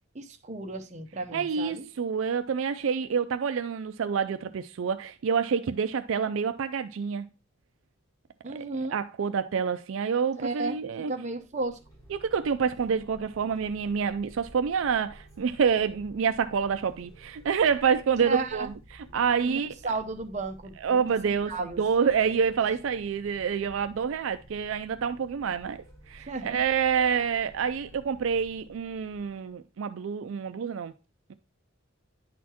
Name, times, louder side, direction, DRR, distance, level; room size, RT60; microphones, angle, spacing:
voice 1, 0.1-1.9 8.4-9.0 10.4-10.8 11.1-11.8 18.2-18.7 19.4-21.8 26.3-26.6, right 3 dB, 35° right, 0.8 m, -34 dB
voice 2, 1.3-7.3 8.5-11.1 12.1-19.9 20.8-30.9, right 6 dB, 75° right, 0.4 m, -27 dB
sound 1, 11.3-29.6, right 1 dB, 15° left, 2.4 m, -53 dB
10.0 x 4.2 x 2.8 m
head